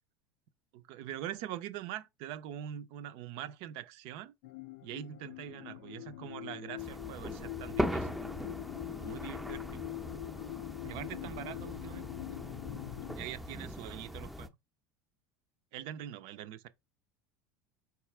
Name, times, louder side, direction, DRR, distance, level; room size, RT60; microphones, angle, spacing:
voice 1, 0.7-4.3 4.8-8.1 9.0-9.8 10.8-12.4 13.2-14.5 15.7-16.7, right 11 dB, 65° right, 0.5 m, -43 dB
sound 1, 4.4-13.2, left 17 dB, 75° left, 0.4 m, -43 dB
sound 2, 6.8-14.5, equal, ahead, 0.6 m, -40 dB
4.1 x 2.4 x 4.2 m
hypercardioid pair, 90°, 10 cm